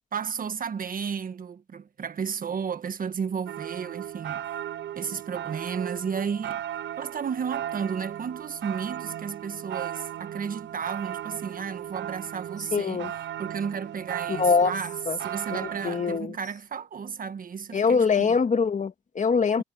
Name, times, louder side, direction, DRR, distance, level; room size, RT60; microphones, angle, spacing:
voice 1, 0.1-4.6 4.9-6.6 7.0-13.1 13.4-18.4, right 6 dB, 45° right, 1.4 m, -33 dB
sound 1, 3.5-16.2, right 11 dB, 65° right, 0.7 m, -36 dB
voice 2, 12.7-13.1 14.3-14.7 15.1-15.2 15.5-16.4 17.7-19.6, left 5 dB, 40° left, 2.2 m, -23 dB
cardioid pair, 90°, 20 cm